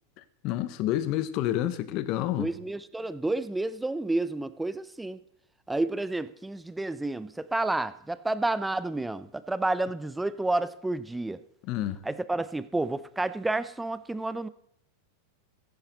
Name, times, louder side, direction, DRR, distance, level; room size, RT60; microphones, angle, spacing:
voice 1, 0.4-2.5 11.7-12.0, left 13 dB, 50° left, 1.0 m, -28 dB
voice 2, 2.4-5.2 5.7-11.4 12.0-14.5, right 2 dB, 10° right, 0.7 m, -30 dB
14.5 x 10.5 x 4.0 m
hypercardioid pair, 100°, 0 cm